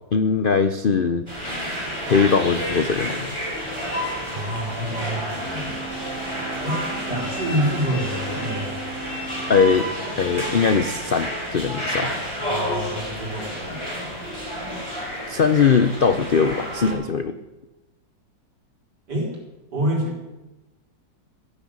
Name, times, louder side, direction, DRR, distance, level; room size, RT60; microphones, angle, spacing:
voice 1, 0.1-1.3 2.0-3.3 9.5-9.9 10.2-12.1 15.3-17.4, left 5 dB, 55° left, 10 dB, 0.5 m, -20 dB
sound 1, 1.3-16.9, equal, 15° right, 5.6 m, -30 dB
voice 2, 4.3-5.7 6.6-6.8 7.1-8.7 12.0-14.1 19.1-19.3 19.7-20.2, right 1 dB, 65° right, -1 dB, 5.2 m, -27 dB
Wind instrument woodwind instrument, 5.3-9.8, right 3 dB, 35° right, 6.6 m, -37 dB
14.0 x 10.5 x 8.7 m, 1.1 s
omnidirectional pair, 1.9 m